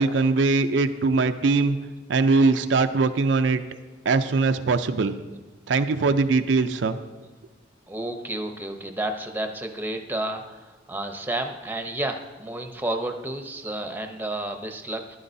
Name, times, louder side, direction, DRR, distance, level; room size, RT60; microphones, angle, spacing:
voice 1, 0.0-1.8 2.1-3.6 4.1-5.2 5.7-7.0, right 3 dB, 80° right, 8 dB, 0.5 m, -21 dB
voice 2, 7.9-15.2, right 1 dB, 10° right, 5 dB, 0.7 m, -31 dB
13.5 x 11.0 x 2.7 m, 1.2 s
head